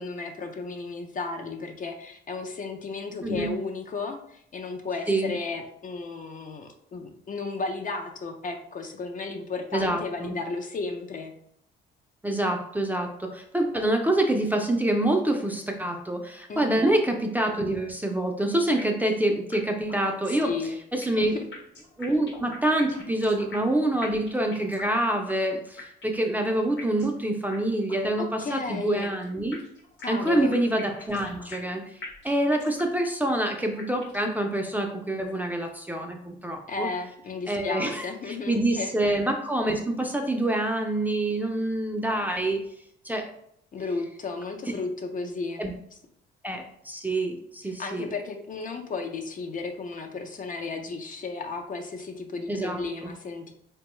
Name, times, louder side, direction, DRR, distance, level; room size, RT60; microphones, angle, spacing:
voice 1, 0.0-11.3 16.5-16.9 20.3-20.7 21.1-21.5 28.2-29.1 30.0-30.5 36.7-38.9 43.7-45.6 47.6-53.5, left 4 dB, 45° left, 4 dB, 0.5 m, -34 dB
voice 2, 3.2-3.5 5.1-5.3 9.7-10.4 12.2-20.5 20.9-21.4 22.0-29.6 30.1-31.8 32.2-36.9 37.5-42.6 43.0-43.3 45.6-45.7 46.4-48.1 52.5-53.1, right 1 dB, 10° right, 2 dB, 0.4 m, -26 dB
sound 1, 18.8-19.2 19.5-19.6 19.9-20.0 20.4-21.2 21.5-23.7 24.0-25.0 25.3-25.4 25.8-26.3 26.8-27.2 27.5-27.6 27.9-28.0 28.4-29.2 29.5-31.7 32.0-33.0 33.3-33.4 33.8-34.3, left 3 dB, 70° left, 1.1 m, -43 dB
3.5 x 2.2 x 3.0 m, 0.69 s
cardioid pair, 90°, 20 cm